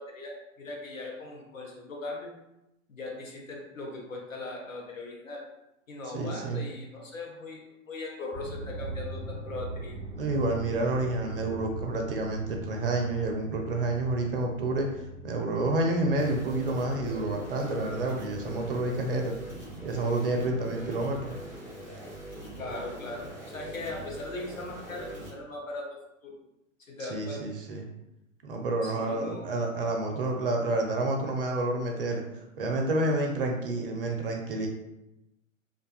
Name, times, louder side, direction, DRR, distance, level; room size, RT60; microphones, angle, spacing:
voice 1, 0.0-2.3 2.9-5.4 5.9-7.6 7.9-10.0 22.6-25.9 26.2-26.4 26.8-27.4 28.8-29.5, left 2 dB, 80° left, -1 dB, 0.8 m, -39 dB
voice 2, 6.1-6.6 10.2-14.9 15.2-19.3 19.8-21.4 27.0-27.9 28.4-32.2 32.6-34.7, right 2 dB, 45° right, 2 dB, 0.4 m, -29 dB
sound 1, 8.3-20.5 20.8-21.4, right 2 dB, 10° right, 0.9 m, -42 dB
sound 2, 16.2-25.3, right 1 dB, 5° left, 0.5 m, -42 dB
2.5 x 2.2 x 2.3 m, 0.90 s
figure-of-eight pair, 105°, 40 cm